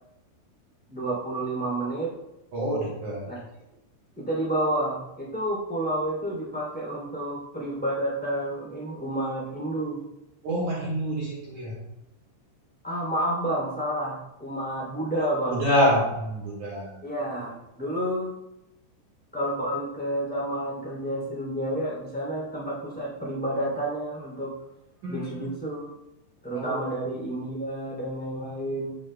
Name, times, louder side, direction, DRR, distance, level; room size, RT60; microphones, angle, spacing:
voice 1, 0.9-2.1 3.3-3.4 4.1-10.0 12.8-15.6 17.0-18.3 19.3-24.5 25.1-25.9 26.4-29.0, right 1 dB, 5° left, -4 dB, 1.2 m, -30 dB
voice 2, 2.5-3.3 10.4-11.8 15.5-17.0 25.0-25.5 26.5-26.7, equal, 55° right, -5 dB, 2.6 m, -26 dB
15.5 x 5.5 x 2.2 m, 0.91 s
omnidirectional pair, 5.4 m